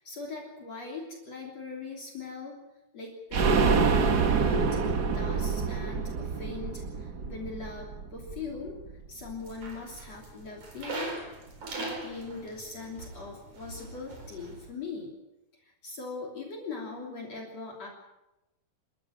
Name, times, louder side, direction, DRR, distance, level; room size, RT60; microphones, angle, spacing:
voice 1, 0.0-2.6 2.9-4.0 4.3-8.8 9.1-11.2 11.8-15.2 15.6-17.9, left 4 dB, 45° left, -1 dB, 4.1 m, -41 dB
sound 1, 3.3-8.9 9.3-9.4 9.7-9.8, right 5 dB, 75° right, 0.9 m, -27 dB
sound 2, 9.4-14.7, right 2 dB, 55° right, 5.5 m, -41 dB
27.0 x 14.0 x 8.8 m, 0.96 s
omnidirectional pair, 4.2 m